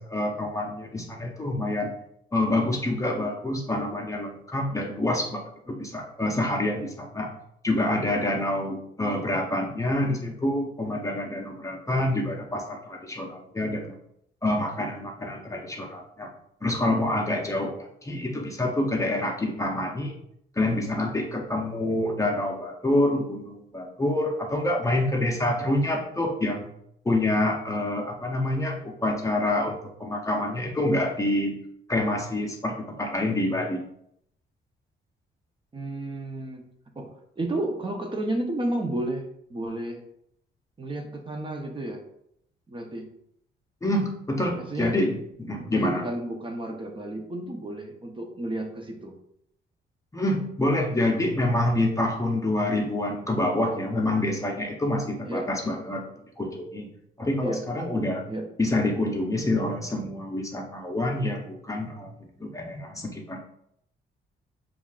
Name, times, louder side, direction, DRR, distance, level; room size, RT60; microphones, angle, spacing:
voice 1, 0.0-1.9 2.3-7.3 7.6-14.0 14.4-16.3 16.6-20.2 20.6-26.7 27.0-31.5 31.9-33.8 43.8-46.0 50.1-56.0 56.4-56.9 57.2-58.2 58.6-62.1 62.4-63.4, left 1 dB, 15° left, 1 dB, 0.7 m, -27 dB
voice 2, 35.7-36.6 37.0-39.2 39.5-40.0 40.8-42.0 42.7-43.1 44.6-45.0 45.4-49.2 55.2-55.5 57.4-57.6 58.3-58.5, right 1 dB, 25° right, 3 dB, 0.7 m, -32 dB
7.0 x 2.5 x 2.4 m, 0.74 s
cardioid pair, 90°, 20 cm